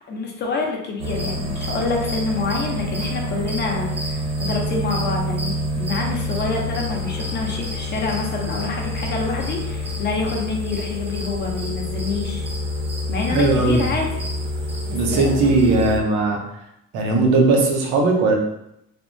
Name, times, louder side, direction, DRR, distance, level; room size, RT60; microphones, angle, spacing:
voice 1, 0.1-12.5 13.1-14.1 14.9-15.5, left 3 dB, 35° left, 0 dB, 0.5 m, -27 dB
sound 1, 1.0-16.0, equal, 20° right, 0.5 m, -27 dB
voice 2, 13.3-13.8 14.9-16.4 16.9-18.3, right 3 dB, 85° right, 1 dB, 0.7 m, -18 dB
3.4 x 2.0 x 2.5 m, 0.82 s
cardioid pair, 145°, 31 cm